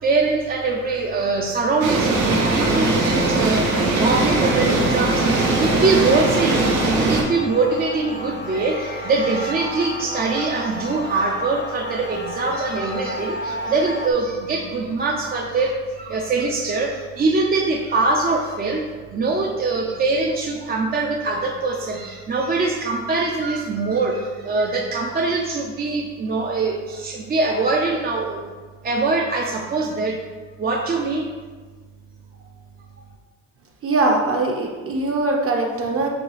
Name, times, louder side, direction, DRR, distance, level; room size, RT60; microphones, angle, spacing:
voice 1, 0.0-18.8 19.1-28.4 28.8-30.2 30.6-31.3, right 3 dB, 30° right, 0 dB, 0.5 m, -23 dB
sound 1, 1.8-7.2, right 2 dB, 80° right, 0.8 m, -20 dB
sound 2, 2.2-14.1, left 1 dB, 35° left, 0.5 m, -33 dB
voice 2, 33.8-36.1, right 2 dB, 45° right, 1 dB, 0.8 m, -21 dB
6.7 x 2.3 x 3.2 m, 1.4 s
cardioid pair, 90°, 30 cm